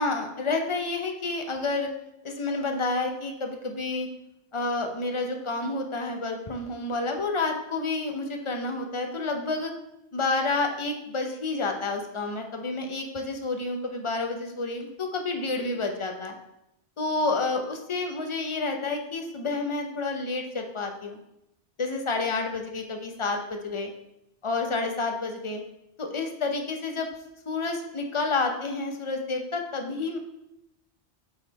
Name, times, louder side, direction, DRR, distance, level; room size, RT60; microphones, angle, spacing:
voice 1, 0.0-1.9 2.2-4.1 4.5-9.7 10.1-16.4 17.0-21.2 21.8-23.9 24.4-25.6 26.0-27.1 27.5-30.2, left 3 dB, 35° left, 3 dB, 0.6 m, -29 dB
6.8 x 3.7 x 4.0 m, 0.84 s
omnidirectional pair, 1.1 m